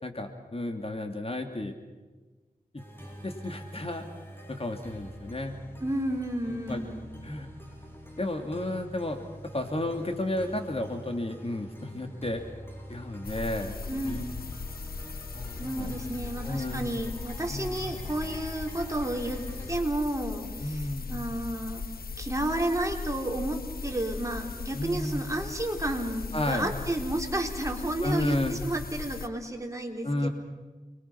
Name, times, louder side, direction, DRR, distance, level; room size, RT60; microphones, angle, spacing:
voice 1, 0.0-1.8 2.7-2.8 3.2-4.0 4.5-5.6 6.5-6.8 7.2-7.5 8.2-9.2 9.5-12.4 12.9-14.2 15.3-15.9 16.4-16.8 17.5-17.8 20.6-21.1 24.7-25.3 26.3-26.7 28.0-28.6 30.0-30.3, left 1 dB, 40° left, 5 dB, 2.6 m, -32 dB
sound 1, 2.8-19.8, equal, 15° left, 6.0 m, -46 dB
voice 2, 5.8-7.1 13.9-14.3 15.6-19.4 19.7-21.8 22.2-30.3, right 1 dB, 20° right, 1 dB, 4.0 m, -32 dB
gray noise, 13.2-29.3, left 5 dB, 85° left, 1.1 m, -38 dB
30.0 x 22.5 x 5.9 m, 1.3 s
wide cardioid pair, 50°, 15 cm